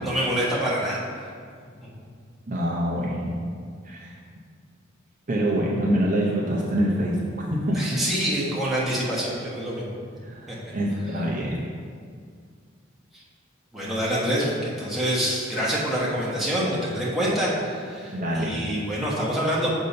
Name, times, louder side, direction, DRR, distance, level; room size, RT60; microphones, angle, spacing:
voice 1, 0.0-1.0 7.7-9.8 10.5-10.7 13.1-13.2 13.7-19.7, equal, ahead, -8 dB, 1.1 m, -26 dB
voice 2, 2.5-3.4 3.8-4.2 5.3-7.2 7.5-8.0 10.2-11.6 18.1-18.6, equal, 40° right, -4 dB, 0.6 m, -25 dB
6.5 x 2.7 x 5.3 m, 2.1 s
head